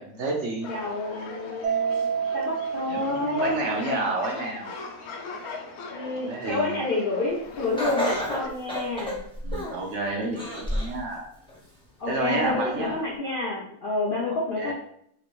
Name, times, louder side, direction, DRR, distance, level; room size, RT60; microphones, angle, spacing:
voice 1, 0.0-0.8 2.9-4.7 6.2-6.8 9.4-11.3 12.1-13.0 14.3-14.7, right 2 dB, 65° right, 0 dB, 0.8 m, -30 dB
sound 1, 0.6-8.5, left 4 dB, 90° left, 1.1 m, -39 dB
voice 2, 0.7-3.5 5.9-9.2 12.0-14.7, left 2 dB, 60° left, -4 dB, 0.5 m, -29 dB
Mallet percussion, 1.6-4.1, right 7 dB, 85° right, 1.1 m, -29 dB
Laughter, 7.8-9.9 10.4-11.0 11.5-11.6 12.5-12.6, equal, 5° left, 0.5 m, -29 dB
3.0 x 2.5 x 3.0 m, 0.69 s
omnidirectional pair, 1.5 m